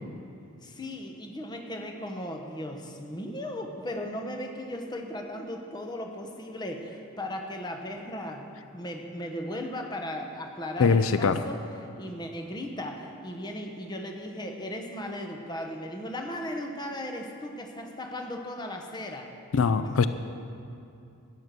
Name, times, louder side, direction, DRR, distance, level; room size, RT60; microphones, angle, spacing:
voice 1, 0.6-19.4, left 1 dB, 20° left, 3 dB, 1.0 m, -37 dB
voice 2, 10.8-11.4 19.5-20.1, left 5 dB, 80° left, 11 dB, 0.4 m, -22 dB
12.0 x 9.4 x 6.7 m, 2.6 s
head